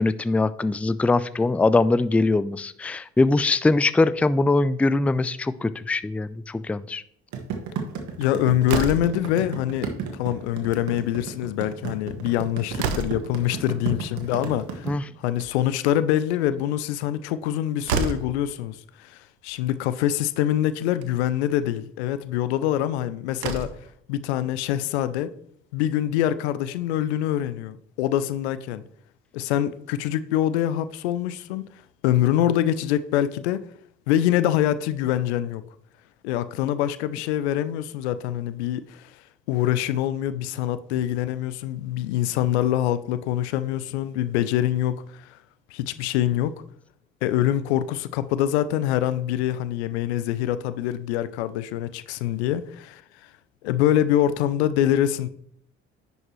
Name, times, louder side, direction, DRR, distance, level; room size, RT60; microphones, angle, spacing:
voice 1, 0.0-7.0 14.9-15.0, left 3 dB, 5° left, 0.3 m, -22 dB
sound 1, 7.3-14.9, right 7 dB, 60° right, 1.6 m, -32 dB
voice 2, 8.2-14.9 15.2-23.8 24.1-25.3 25.7-28.8 29.3-31.7 32.0-33.6 34.1-35.6 36.2-39.1 39.5-45.4 45.7-46.6 47.2-53.0 53.6-55.3, left 12 dB, 85° left, 0.5 m, -25 dB
Slam, 8.6-9.3 10.5-10.9 11.2-11.3 11.6-11.7 12.2-13.4 15.1-15.8 17.4-17.5 17.8-18.4 19.5-19.6 20.0-20.1 20.9-21.1 22.8-22.9 23.3-23.9, right 5 dB, 85° right, 0.7 m, -29 dB
10.5 x 5.4 x 3.1 m
hypercardioid pair, 50°, 33 cm